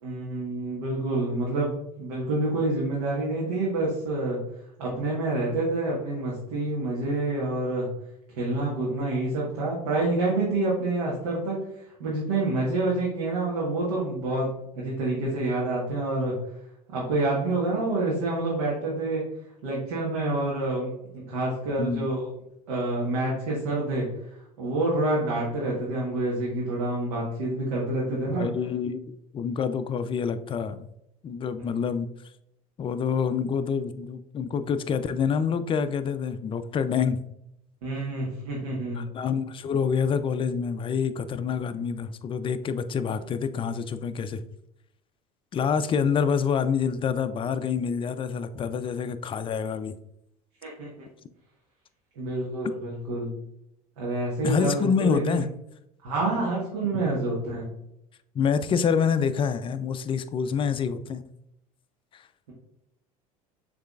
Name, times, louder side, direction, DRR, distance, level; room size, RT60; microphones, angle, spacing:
voice 1, 0.0-4.4 4.8-7.9 8.3-11.6 12.0-16.4 16.9-19.2 19.6-22.3 22.7-24.1 24.6-28.5 37.8-39.0 50.6-50.9 52.2-53.3 54.0-55.4 56.0-57.7, right 2 dB, 75° right, -5 dB, 1.4 m, -27 dB
voice 2, 21.8-22.1 28.4-30.8 31.2-32.1 32.8-37.2 39.0-44.4 45.5-49.9 54.4-55.5 56.9-57.0 58.3-61.2 62.1-62.2, left 6 dB, 25° left, 11 dB, 0.4 m, -27 dB
6.3 x 3.3 x 2.4 m, 0.80 s
hypercardioid pair, 75°, 19 cm